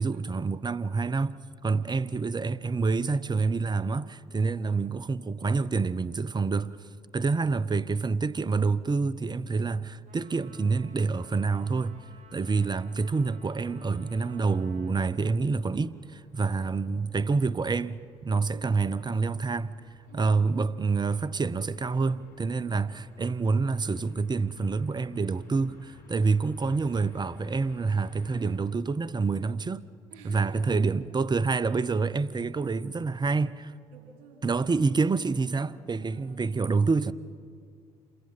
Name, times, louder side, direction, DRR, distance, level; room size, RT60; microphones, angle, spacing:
voice 1, 0.0-6.9 7.1-12.0 12.3-19.7 20.1-29.9 30.2-33.7 34.4-37.1, right 4 dB, 25° right, 0.8 m, -27 dB
voice 2, 1.7-2.0 4.4-4.7 12.3-12.6 16.5-17.0 18.5-18.8 20.1-20.4 22.5-22.9 30.1-30.8 33.9-34.4 35.9-36.6, right 4 dB, 75° right, 3.9 m, -53 dB
Trumpet, 10.1-15.1, right 5 dB, 50° right, 5.5 m, -55 dB
sound 1, 11.2-28.6, left 3 dB, 70° left, 3.5 m, -55 dB
27.5 x 21.5 x 5.6 m
hypercardioid pair, 50°, 17 cm